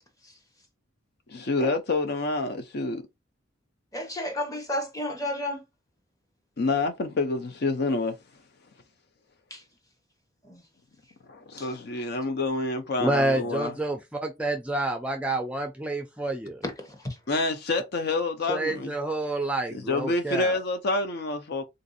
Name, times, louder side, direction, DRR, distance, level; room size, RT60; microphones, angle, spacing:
voice 1, 1.3-3.0 6.6-8.2 11.3-13.7 17.3-18.9 19.7-21.6, left 2 dB, 55° left, 0.5 m, -27 dB
voice 2, 3.9-5.6 9.5-9.6 10.5-10.6 11.6-11.7 16.6-16.9, left 1 dB, 15° left, 0.8 m, -32 dB
voice 3, 13.0-16.6 18.5-20.6, right 2 dB, 5° right, 0.4 m, -28 dB
3.8 x 2.5 x 2.5 m
head